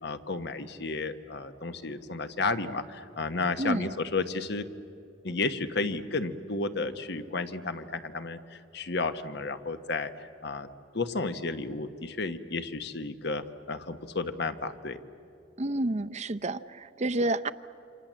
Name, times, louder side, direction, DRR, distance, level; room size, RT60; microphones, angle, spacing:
voice 1, 0.0-4.7 5.2-10.7 10.9-15.0, left 3 dB, 60° left, 10 dB, 1.2 m, -32 dB
voice 2, 3.6-3.9 15.6-17.5, right 2 dB, 35° right, 12 dB, 0.6 m, -29 dB
28.5 x 26.5 x 7.5 m, 2.6 s
head